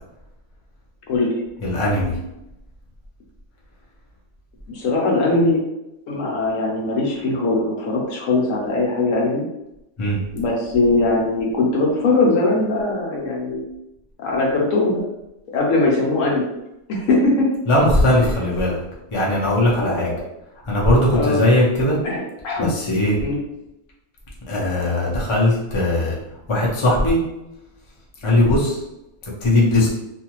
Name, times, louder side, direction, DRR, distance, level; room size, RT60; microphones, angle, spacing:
voice 1, 1.1-1.4 4.7-5.6 6.1-9.4 10.3-13.7 14.2-15.0 15.5-16.5 16.9-17.5 19.8-20.2 21.1-21.4 22.0-22.7 23.2-23.4 28.2-28.4, left 2 dB, 65° left, -2 dB, 1.0 m, -20 dB
voice 2, 1.6-2.1 10.0-10.2 17.7-18.8 19.1-20.1 20.7-22.0 22.6-23.2 24.5-26.1 26.5-27.2 28.2-28.8 29.4-29.9, left 1 dB, 35° left, -4 dB, 0.4 m, -18 dB
2.6 x 2.4 x 2.9 m, 0.89 s
omnidirectional pair, 1.6 m